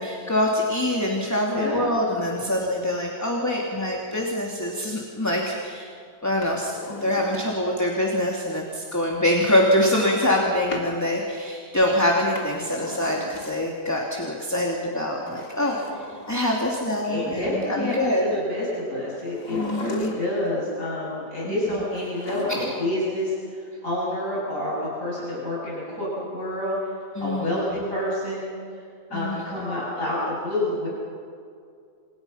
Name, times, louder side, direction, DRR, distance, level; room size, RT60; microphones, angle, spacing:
voice 1, 0.0-5.9 6.2-18.4 19.5-20.1 21.4-21.8 22.5-22.6 27.1-27.8 29.1-29.7, left 1 dB, 10° left, -1 dB, 2.9 m, -25 dB
Drawer open or close, 6.3-7.8 9.5-10.9 12.1-13.9 15.1-16.8 19.2-20.5 21.9-23.0 23.3-23.4, left 2 dB, 75° left, 3.8 m, -38 dB
voice 2, 17.0-26.9 27.2-28.8 29.1-30.9, left 1 dB, 55° left, -7 dB, 8.5 m, -28 dB
29.0 x 28.0 x 5.8 m, 2.3 s
omnidirectional pair, 1.7 m